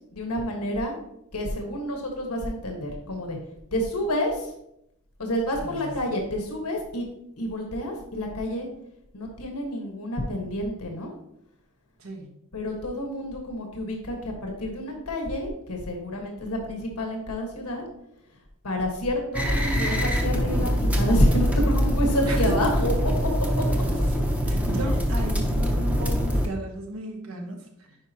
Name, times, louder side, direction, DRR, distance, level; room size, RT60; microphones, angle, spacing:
voice 1, 0.1-1.0 1.3-3.4 3.7-4.5 5.2-7.1 7.4-8.7 9.1-11.1 12.5-17.8 18.6-23.3, equal, 90° left, 1 dB, 1.5 m, -28 dB
voice 2, 5.6-6.1 12.0-12.3 22.3-22.9 24.5-28.0, right 1 dB, 70° right, 2 dB, 1.3 m, -34 dB
sound 1, 19.3-26.5, equal, 5° right, 0.8 m, -24 dB
9.6 x 5.0 x 2.9 m, 0.79 s
head